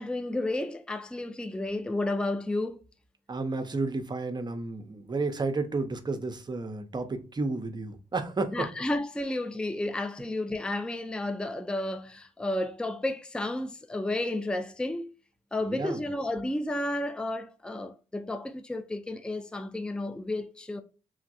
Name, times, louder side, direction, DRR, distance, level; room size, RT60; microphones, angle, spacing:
voice 1, 0.0-2.8 8.5-15.1 15.5-20.8, left 1 dB, 5° left, 0.4 m, -32 dB
voice 2, 3.3-8.6 15.6-16.1, right 3 dB, 30° right, 0.7 m, -32 dB
3.1 x 2.4 x 2.6 m
supercardioid pair, 50°, 15 cm